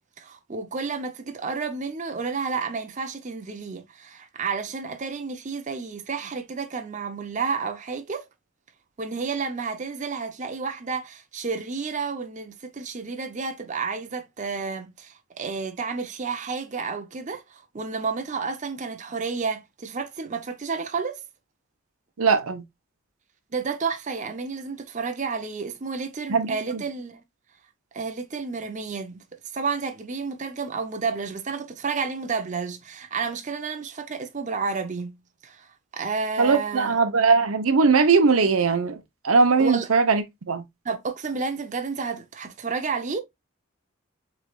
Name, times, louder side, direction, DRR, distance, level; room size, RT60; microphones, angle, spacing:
voice 1, 0.2-8.3 9.0-21.2 23.5-27.2 27.9-35.2 35.4-37.0 39.6-39.9 40.8-43.2, right 5 dB, 35° right, 0.6 m, -31 dB
voice 2, 22.2-22.6 26.3-26.8 36.4-40.6, right 4 dB, 85° right, 0.8 m, -20 dB
7.0 x 3.2 x 2.3 m
head